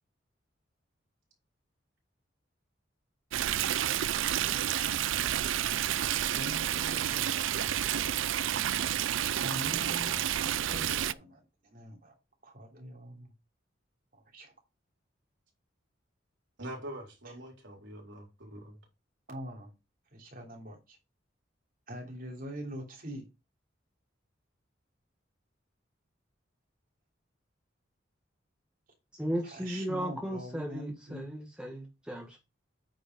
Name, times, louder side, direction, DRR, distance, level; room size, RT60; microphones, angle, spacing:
Stream, 3.3-11.1, right 11 dB, 85° right, 0.5 m, -30 dB
voice 1, 6.3-7.3 9.1-12.1 12.4-13.3 14.1-14.5 19.3-19.7 20.1-21.0 21.9-23.2 29.4-31.3, equal, 45° right, 3.1 m, -43 dB
voice 2, 16.6-18.8, right 1 dB, 70° right, 4.0 m, -44 dB
voice 3, 29.1-32.4, equal, 5° right, 1.5 m, -36 dB
9.1 x 5.2 x 5.3 m
head